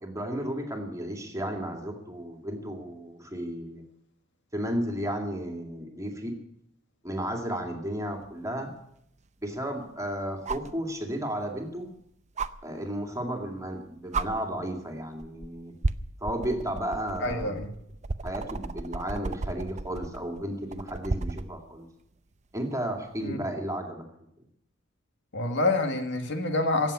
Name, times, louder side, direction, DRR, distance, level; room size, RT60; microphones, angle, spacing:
voice 1, 0.0-3.8 4.5-6.4 7.0-8.7 9.4-11.9 12.6-15.7 16.2-17.6 18.2-21.9 22.5-24.1, right 1 dB, 15° right, 2 dB, 2.2 m, -33 dB
sound 1, 8.2-8.3 10.5-10.8 12.4-12.5 13.6-13.8 14.1-14.3 15.2-15.5 15.8-21.5 23.2-23.3, right 3 dB, 35° right, 0.6 m, -33 dB
voice 2, 17.2-17.7 23.2-23.4 25.3-26.9, left 2 dB, 55° left, 5 dB, 1.8 m, -27 dB
16.5 x 7.7 x 9.6 m, 0.78 s
head